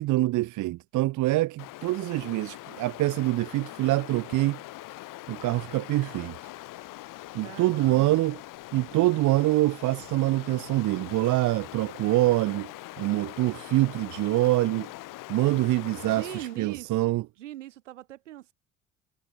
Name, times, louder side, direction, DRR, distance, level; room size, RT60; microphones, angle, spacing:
voice 1, 0.0-4.6 5.3-6.3 7.3-8.4 8.7-12.7 13.0-14.9 15.3-17.2, right 17 dB, 55° right, 0.8 m, -25 dB
Stream, 1.6-16.6, left 18 dB, 60° left, 1.2 m, -43 dB
voice 2, 7.4-8.2 8.9-9.2 16.0-17.1 17.4-18.5, right 14 dB, 85° right, 7.1 m, -42 dB
hypercardioid pair, 60°, 35 cm